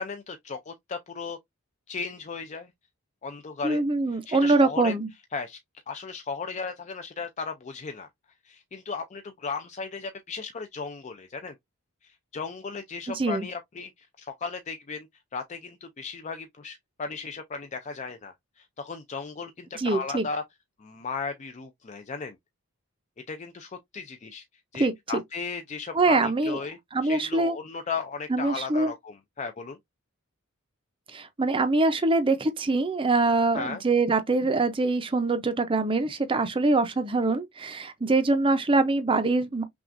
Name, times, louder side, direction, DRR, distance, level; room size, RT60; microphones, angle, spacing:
voice 1, 0.0-1.4 1.9-2.7 3.2-3.8 4.1-4.9 5.3-5.6 5.9-8.1 8.4-11.5 12.0-15.1 15.3-20.4 20.8-22.4 23.3-24.4 24.7-29.8 33.5-33.8, left 4 dB, 30° left, 0.4 m, -36 dB
voice 2, 3.6-5.1 13.1-13.5 19.8-20.2 24.8-25.2 25.9-26.6 26.9-27.6 28.3-28.9 31.1-39.6, right 3 dB, 25° right, 0.5 m, -24 dB
5.8 x 2.3 x 2.5 m
head